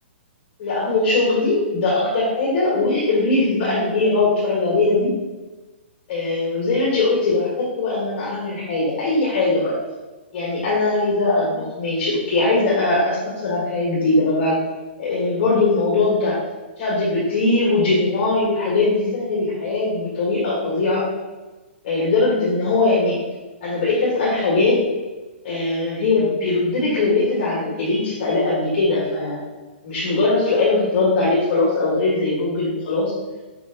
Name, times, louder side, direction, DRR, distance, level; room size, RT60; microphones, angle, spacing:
voice 1, 0.6-5.1 6.1-7.5 7.8-9.7 10.3-14.6 15.0-16.4 16.8-21.0 21.8-23.2 23.6-24.8 25.4-29.4 29.8-33.1, left 3 dB, 30° left, -6 dB, 1.7 m, -20 dB
5.3 x 5.2 x 3.9 m, 1.2 s
hypercardioid pair, 175°, 6 cm